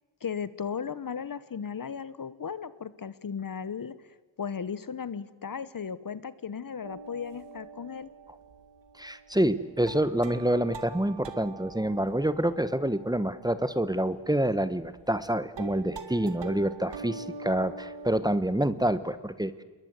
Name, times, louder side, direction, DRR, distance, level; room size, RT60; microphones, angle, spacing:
voice 1, 0.2-4.1 4.4-8.1, left 6 dB, 45° left, 16 dB, 1.1 m, -36 dB
sound 1, 6.8-15.3 15.6-18.2, right 5 dB, 65° right, 2.1 m, -44 dB
voice 2, 9.0-19.5, right 1 dB, 10° right, 14 dB, 1.2 m, -27 dB
28.0 x 21.5 x 8.2 m, 1.2 s
wide cardioid pair, 100°, 45 cm